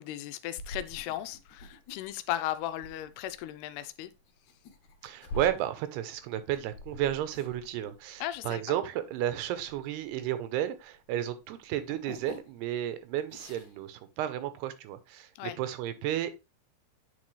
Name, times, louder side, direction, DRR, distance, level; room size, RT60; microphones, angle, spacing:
voice 1, 0.0-4.1 8.2-8.6 15.4-15.6, left 13 dB, 80° left, 2.6 m, -36 dB
sound 1, 0.6-10.9 11.2-12.8 13.1-13.8, left 1 dB, 65° left, 2.1 m, -46 dB
voice 2, 5.0-16.3, right 12 dB, 80° right, 2.9 m, -33 dB
8.6 x 5.3 x 3.2 m
omnidirectional pair, 4.7 m